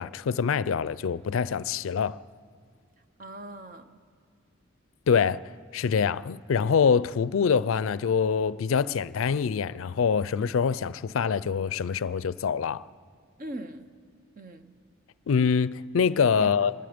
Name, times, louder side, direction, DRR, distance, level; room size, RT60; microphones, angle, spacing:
voice 1, 0.0-2.2 5.1-5.4 5.7-12.8 15.3-16.7, left 6 dB, 85° left, 0.4 m, -25 dB
voice 2, 3.2-4.0 13.4-13.9 14.4-14.8 16.4-16.7, right 1 dB, 45° right, 0.9 m, -41 dB
25.0 x 20.5 x 5.1 m
head